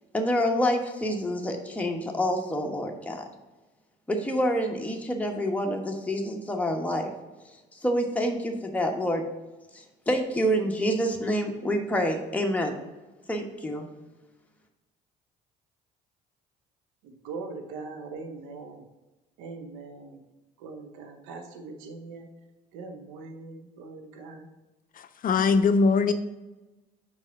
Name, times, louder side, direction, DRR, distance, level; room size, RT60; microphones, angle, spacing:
voice 1, 0.1-3.2 4.1-7.1 7.8-9.2 10.1-12.8 13.3-13.9, equal, 5° left, 1 dB, 1.2 m, -27 dB
voice 2, 17.2-18.8 19.4-20.2 20.6-22.3 22.7-24.5, right 4 dB, 75° right, 5 dB, 1.0 m, -41 dB
voice 3, 25.0-26.1, left 4 dB, 45° left, 10 dB, 0.5 m, -22 dB
5.3 x 4.7 x 5.3 m, 1.1 s
hypercardioid pair, 60°, 21 cm